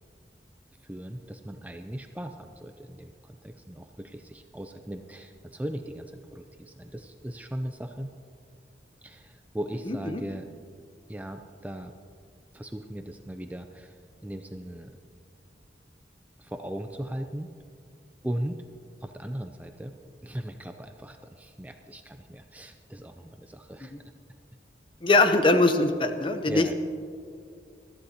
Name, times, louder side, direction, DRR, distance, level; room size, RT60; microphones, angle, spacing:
voice 1, 0.8-8.1 9.0-10.5 11.1-11.9 12.5-14.0 14.2-14.9 16.4-17.5 18.2-18.6 19.0-20.0 20.2-24.1 26.5-26.7, right 1 dB, 10° right, 6 dB, 0.4 m, -38 dB
voice 2, 9.9-10.2 23.9-24.0 25.0-26.7, left 2 dB, 30° left, 8 dB, 0.8 m, -22 dB
21.0 x 14.0 x 2.9 m, 2.3 s
head